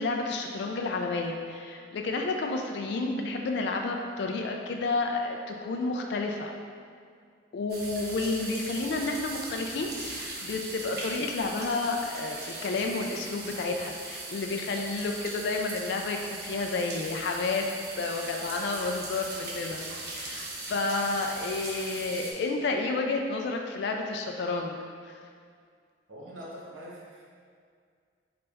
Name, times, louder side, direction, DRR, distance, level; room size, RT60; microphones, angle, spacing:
voice 1, 0.0-6.5 7.5-19.8 20.1-24.8 25.0-25.2, left 3 dB, 60° left, 2 dB, 0.3 m, -31 dB
sound 1, 7.7-22.3, right 2 dB, 55° right, 0.7 m, -39 dB
voice 2, 26.1-27.2, equal, 85° right, -5 dB, 1.0 m, -43 dB
4.0 x 3.3 x 3.4 m, 2.1 s
head